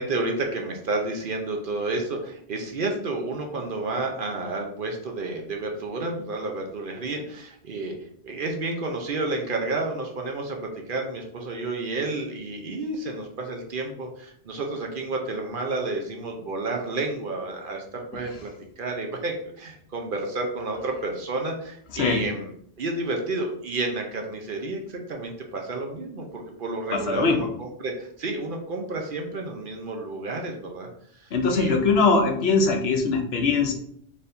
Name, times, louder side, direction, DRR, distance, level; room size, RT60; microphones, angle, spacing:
voice 1, 0.0-7.9 8.2-22.5 22.8-30.9 31.2-31.9, right 2 dB, 55° right, 2 dB, 0.8 m, -31 dB
voice 2, 21.9-22.3 26.9-27.5 31.3-33.7, left 4 dB, 70° left, 3 dB, 0.9 m, -21 dB
4.3 x 3.6 x 2.6 m, 0.66 s
omnidirectional pair, 1.1 m